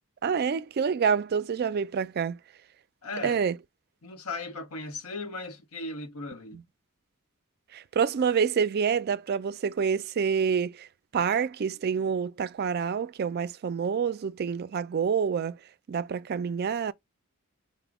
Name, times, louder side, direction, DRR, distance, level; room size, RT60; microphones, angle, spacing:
voice 1, 0.2-2.4 3.2-3.6 6.5-6.6 7.7-10.9 11.1-15.6 15.9-16.9, right 6 dB, 45° right, 0.3 m, -27 dB
voice 2, 3.0-3.4 4.0-6.6, left 2 dB, 90° left, 0.9 m, -37 dB
5.0 x 2.1 x 3.5 m
head